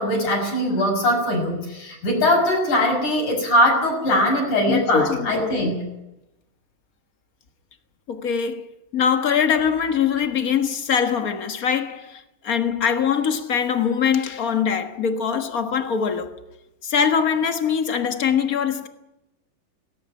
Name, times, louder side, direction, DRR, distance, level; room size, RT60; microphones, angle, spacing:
voice 1, 0.0-5.8, left 1 dB, 65° left, 7.1 m, -21 dB
voice 2, 4.7-5.7 8.1-8.7 8.9-16.4 16.8-18.9, left 7 dB, 50° left, 1.0 m, -22 dB
18.0 x 18.0 x 9.4 m
omnidirectional pair, 3.8 m